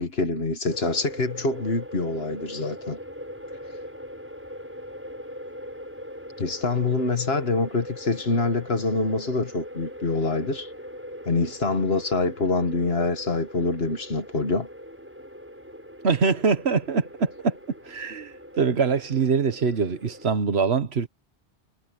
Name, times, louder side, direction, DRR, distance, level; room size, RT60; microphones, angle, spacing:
voice 1, 0.0-3.0 6.4-10.7 11.3-14.7, left 3 dB, 75° left, 2.0 m, -25 dB
sound 1, 0.7-20.3, equal, 10° right, 5.5 m, -41 dB
voice 2, 16.0-17.5 17.9-21.1, right 5 dB, 85° right, 1.5 m, -23 dB
omnidirectional pair, 1.1 m